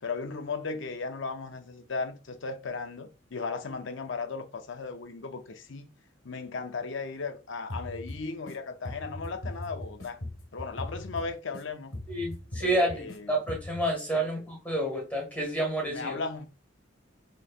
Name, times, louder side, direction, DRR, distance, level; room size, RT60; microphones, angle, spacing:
voice 1, 0.0-5.9 6.2-10.2 10.5-11.9 12.6-13.3 14.1-14.3 15.9-16.5, left 4 dB, 65° left, 0.6 m, -36 dB
sound 1, 7.7-8.5 8.8-11.6 11.9-13.2 13.5-13.9, left 1 dB, 80° left, 1.2 m, -39 dB
voice 2, 12.1-16.2, right 1 dB, 10° left, 1.7 m, -29 dB
6.4 x 3.1 x 2.4 m
head